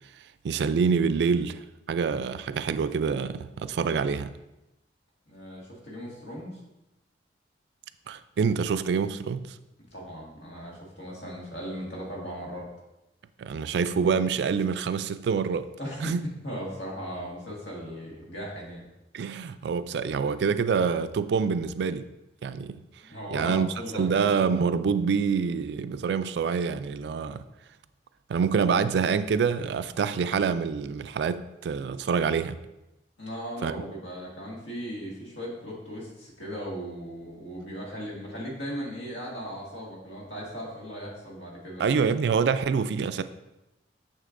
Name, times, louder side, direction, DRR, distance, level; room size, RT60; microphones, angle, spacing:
voice 1, 0.4-1.6 1.9-4.3 8.1-9.5 13.4-15.7 16.0-16.3 19.1-22.0 22.4-22.8 23.3-27.4 28.3-32.6 33.6-33.7 41.8-43.2, right 6 dB, 70° right, 0.3 m, -26 dB
voice 2, 5.3-6.6 9.9-12.7 15.8-16.1 16.4-18.9 23.1-24.1 33.2-42.0, equal, 80° left, 1.7 m, -37 dB
6.4 x 6.4 x 2.5 m
head